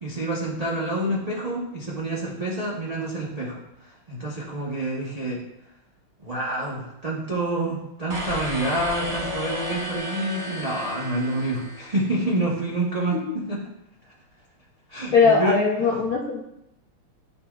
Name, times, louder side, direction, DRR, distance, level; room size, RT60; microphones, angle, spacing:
voice 1, 0.0-3.6 4.1-5.4 6.2-13.6 14.9-15.6, right 1 dB, 70° right, -6 dB, 0.3 m, -27 dB
sound 1, 8.1-12.3, left 1 dB, 25° right, 1.6 m, -33 dB
voice 2, 15.1-16.4, left 5 dB, 75° left, -3 dB, 0.8 m, -20 dB
9.9 x 4.1 x 2.3 m, 0.83 s
omnidirectional pair, 2.4 m